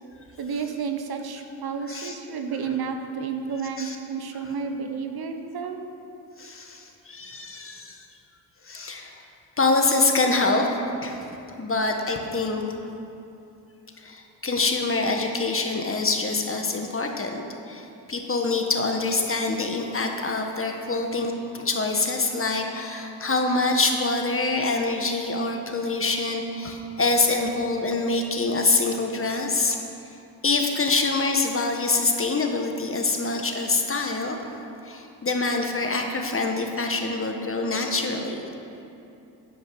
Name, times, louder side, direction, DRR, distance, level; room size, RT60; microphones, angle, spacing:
voice 1, 0.4-5.8, right 5 dB, 55° right, 6 dB, 1.0 m, -31 dB
voice 2, 6.4-8.1 8.6-9.2 9.6-11.3 11.6-12.6 14.0-17.4 17.7-29.8 30.4-34.6 34.8-38.5, left 3 dB, 30° left, 3 dB, 1.4 m, -25 dB
11.5 x 5.2 x 6.3 m, 2.8 s
supercardioid pair, 55°, 45 cm